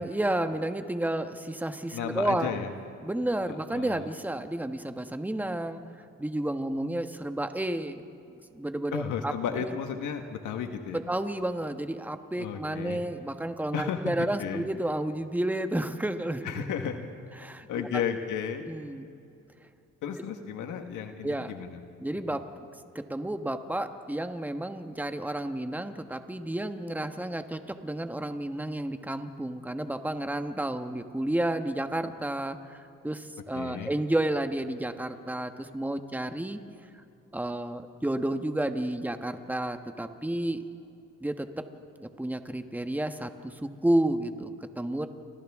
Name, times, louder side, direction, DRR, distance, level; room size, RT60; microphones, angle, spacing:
voice 1, 0.0-2.5 3.0-5.8 6.2-8.0 8.5-9.7 10.9-16.5 17.4-17.7 17.9-18.0 18.7-19.1 21.2-21.5 22.0-22.7 22.9-36.6 37.3-40.6 41.2-41.7 42.0-45.1, right 1 dB, 5° right, 8 dB, 1.2 m, -31 dB
voice 2, 1.9-2.7 3.5-4.1 8.9-11.0 12.4-13.0 13.7-14.6 16.4-17.0 17.7-18.6 20.0-21.8 22.3-22.4 33.5-33.9, left 7 dB, 85° left, 6 dB, 1.5 m, -33 dB
29.5 x 25.5 x 3.6 m, 2.5 s
cardioid pair, 90°, 30 cm